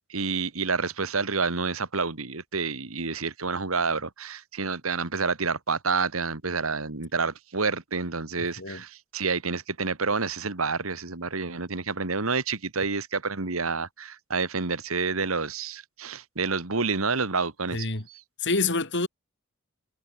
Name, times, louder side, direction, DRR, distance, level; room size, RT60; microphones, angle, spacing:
voice 1, 0.1-18.2, right 4 dB, 80° right, 2.0 m, -29 dB
voice 2, 17.7-18.1 18.4-19.1, left 3 dB, 55° left, 4.7 m, -27 dB
head